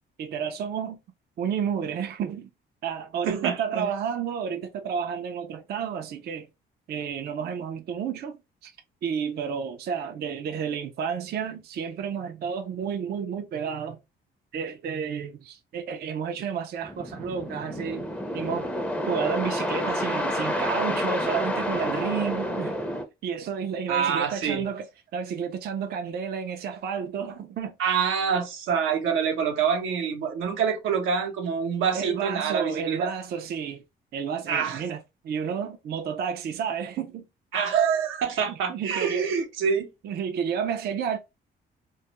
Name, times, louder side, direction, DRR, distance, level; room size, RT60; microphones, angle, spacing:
voice 1, 0.2-1.0 1.4-2.5 2.8-6.5 6.9-8.4 8.6-8.7 9.0-14.0 14.5-18.1 18.3-18.7 19.1-22.8 23.2-24.8 25.1-27.8 31.9-33.8 34.1-37.2 38.5-39.3 40.0-41.2, right 7 dB, 55° right, 0.4 m, -31 dB
voice 2, 3.2-3.9 23.9-24.7 27.8-33.1 34.5-34.8 37.5-39.9, right 7 dB, 85° right, 0.7 m, -26 dB
sound 1, 16.8-23.0, equal, 5° left, 0.5 m, -29 dB
2.2 x 2.0 x 2.8 m
cardioid pair, 90°, 20 cm